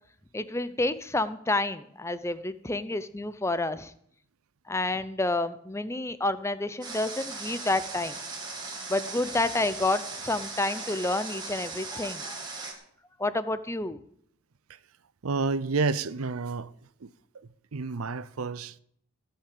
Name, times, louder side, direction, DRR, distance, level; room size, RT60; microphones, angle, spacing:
voice 1, 0.3-3.9 4.7-8.2 8.9-12.4 13.2-14.0, left 2 dB, 10° left, 0.6 m, -29 dB
Water, 6.8-12.7, right 3 dB, 20° right, 2.4 m, -38 dB
voice 2, 15.2-16.7 17.0-18.8, right 4 dB, 80° right, 0.6 m, -30 dB
16.5 x 5.8 x 8.5 m
head